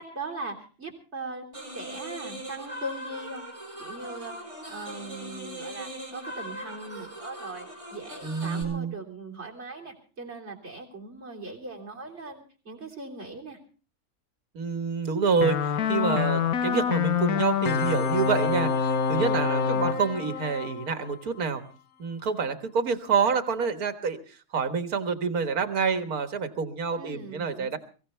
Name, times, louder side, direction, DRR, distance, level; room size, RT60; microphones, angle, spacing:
voice 1, 0.0-1.5 1.7-3.4 3.8-4.3 4.7-13.6 19.5-19.9 27.0-27.8, right 2 dB, 45° right, 1 dB, 3.7 m, -40 dB
sound 1, 1.5-8.6, equal, 20° right, 4.4 m, -40 dB
voice 2, 8.2-8.9 14.6-21.6 22.0-24.2 24.5-27.8, right 5 dB, 80° right, 9 dB, 1.9 m, -27 dB
sound 2, 15.4-21.5, left 6 dB, 80° left, 1.4 m, -26 dB
23.5 x 15.5 x 3.3 m, 0.38 s
omnidirectional pair, 1.5 m